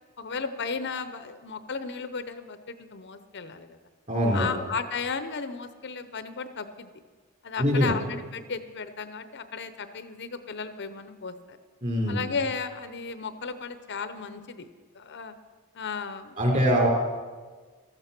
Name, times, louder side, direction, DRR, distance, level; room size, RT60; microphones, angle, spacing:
voice 1, 0.2-3.8 4.3-6.9 7.4-11.6 12.1-14.7 14.9-15.3 15.7-16.4, left 5 dB, 55° left, 11 dB, 0.8 m, -34 dB
voice 2, 4.1-4.5 7.6-7.9 11.8-12.2 16.4-16.9, equal, 35° right, 0 dB, 4.4 m, -23 dB
16.0 x 14.0 x 6.0 m, 1.4 s
head